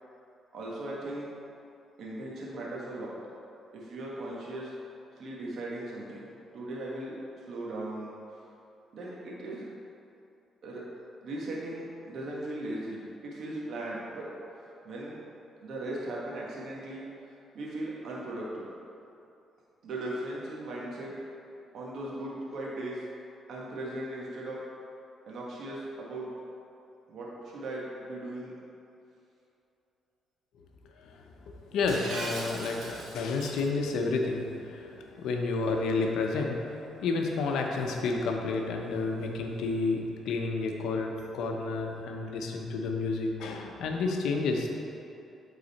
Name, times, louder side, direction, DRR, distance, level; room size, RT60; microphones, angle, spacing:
voice 1, 0.5-1.3 2.0-3.1 3.7-4.7 5.1-7.1 7.5-8.5 8.9-9.6 10.6-10.8 11.2-14.3 14.8-15.2 15.6-17.0 17.5-18.7 19.8-21.1 21.7-23.0 23.5-24.6 25.3-26.3 27.1-28.5, right 1 dB, 65° right, -5 dB, 1.4 m, -38 dB
voice 2, 31.0-44.7, left 3 dB, 80° left, 2 dB, 0.8 m, -31 dB
Shatter, 31.9-33.6, right 2 dB, 85° right, 1.6 m, -39 dB
8.4 x 4.0 x 4.2 m, 2.7 s
cardioid pair, 90°, 0 cm